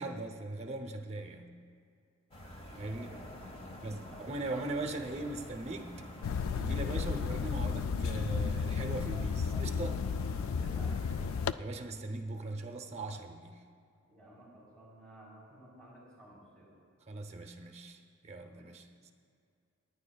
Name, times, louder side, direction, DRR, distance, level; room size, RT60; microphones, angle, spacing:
voice 1, 0.0-1.5 2.8-3.1 3.8-5.9 6.3-10.0 11.6-13.6 17.1-19.1, right 2 dB, 30° right, 5 dB, 0.7 m, -40 dB
sound 1, 2.3-11.5, left 1 dB, 30° left, 1.0 m, -48 dB
voice 2, 2.8-3.3 4.1-4.4 10.5-10.9 14.1-16.7 18.5-18.7, right 1 dB, 5° left, -8 dB, 3.6 m, -55 dB
sound 2, 6.2-11.5, left 6 dB, 75° left, 0.3 m, -33 dB
28.5 x 9.7 x 2.3 m, 2.3 s
head